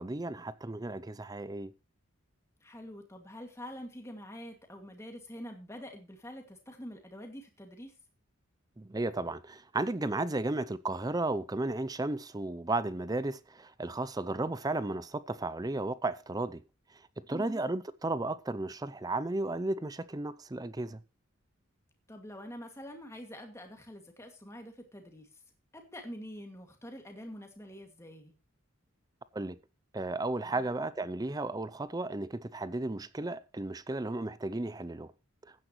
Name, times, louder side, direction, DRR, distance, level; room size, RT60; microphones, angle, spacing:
voice 1, 0.0-1.7 8.8-16.6 17.2-21.0 29.3-29.6 29.9-35.1, right 2 dB, 20° right, 0.5 m, -34 dB
voice 2, 2.6-7.9 17.3-17.6 22.1-25.3 25.7-28.3 30.5-30.7, equal, 15° left, 2.3 m, -46 dB
15.5 x 10.0 x 3.1 m
head